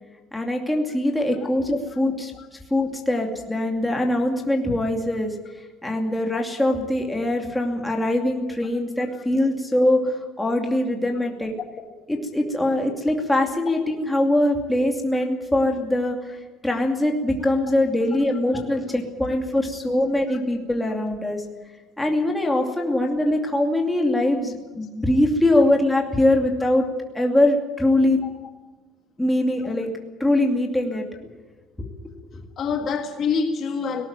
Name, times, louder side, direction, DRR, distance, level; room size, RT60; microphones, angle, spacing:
voice 1, 0.3-2.3 2.7-5.3 5.8-11.5 12.1-16.2 16.6-21.4 22.0-26.9 27.1-28.2 29.2-29.9 30.2-31.0 31.8-31.9, left 1 dB, 5° left, 1 dB, 2.6 m, -22 dB
voice 2, 32.6-34.1, left 5 dB, 40° left, 4 dB, 1.7 m, -26 dB
18.5 x 18.5 x 9.1 m, 1.2 s
cardioid pair, 180°, 0 cm